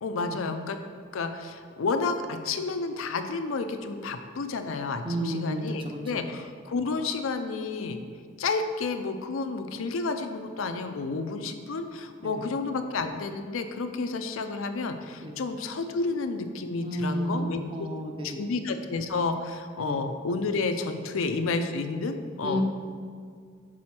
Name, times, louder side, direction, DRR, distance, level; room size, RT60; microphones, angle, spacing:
voice 1, 0.0-0.8 1.1-8.0 8.4-17.9 18.2-22.6, left 3 dB, 90° left, 7 dB, 0.5 m, -31 dB
voice 2, 5.0-6.2 12.2-12.3 15.2-15.3 16.8-18.4 19.9-20.0 22.4-22.6, equal, 25° right, 3 dB, 0.6 m, -31 dB
6.2 x 4.2 x 4.3 m, 2.1 s
head